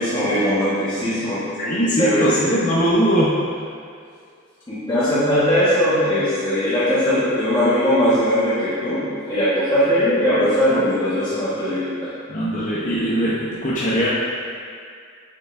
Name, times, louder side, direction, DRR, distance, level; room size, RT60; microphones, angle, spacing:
voice 1, 0.0-2.4 4.7-12.1, equal, 20° left, -13 dB, 1.2 m, -20 dB
voice 2, 1.6-3.3 12.3-14.1, equal, 35° left, -8 dB, 0.7 m, -20 dB
6.7 x 6.6 x 2.5 m, 2.2 s
head